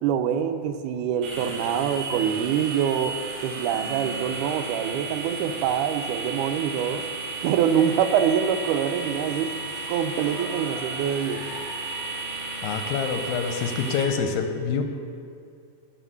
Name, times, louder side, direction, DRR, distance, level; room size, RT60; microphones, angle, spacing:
voice 1, 0.0-3.2 3.4-7.1 7.4-9.5 9.9-11.4, right 8 dB, 85° right, 9 dB, 2.0 m, -25 dB
sound 1, 1.2-14.0, right 3 dB, 65° right, 2.2 m, -34 dB
sound 2, 7.7-14.2, left 2 dB, 5° left, 0.9 m, -43 dB
voice 2, 12.6-14.8, left 6 dB, 80° left, 6 dB, 1.9 m, -26 dB
10.0 x 4.3 x 6.5 m, 2.4 s
omnidirectional pair, 3.6 m